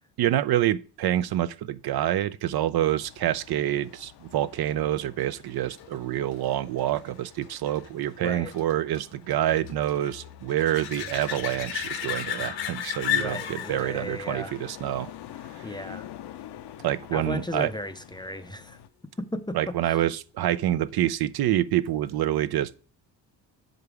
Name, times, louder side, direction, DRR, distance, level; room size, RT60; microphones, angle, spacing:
voice 1, 0.2-15.1 15.5-15.8 16.8-17.7 19.5-22.9, right 12 dB, 60° right, 0.5 m, -27 dB
sound 1, 2.7-18.9, left 12 dB, 65° left, 0.6 m, -48 dB
sound 2, 4.9-16.2 21.9-22.0, left 9 dB, 85° left, 1.2 m, -36 dB
voice 2, 8.2-8.5 13.1-14.5 15.6-16.1 17.1-18.8 19.2-20.0, left 1 dB, 10° left, 0.5 m, -35 dB
6.8 x 5.2 x 4.7 m
cardioid pair, 105°, 44 cm